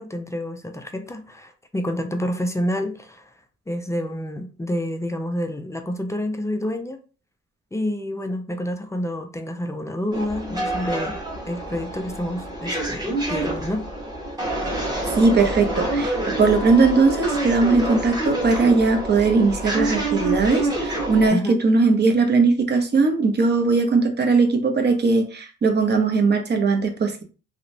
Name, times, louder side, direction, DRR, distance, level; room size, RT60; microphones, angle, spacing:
voice 1, 0.0-3.3 3.7-7.0 7.7-11.2 11.4-13.9 21.3-21.6, left 1 dB, 10° left, 6 dB, 0.3 m, -28 dB
sound 1, 10.1-21.3, right 1 dB, 15° right, 1.1 m, -27 dB
voice 2, 15.2-27.2, right 4 dB, 35° right, 4 dB, 0.7 m, -19 dB
2.8 x 2.1 x 2.6 m, 0.36 s
cardioid pair, 90°, 30 cm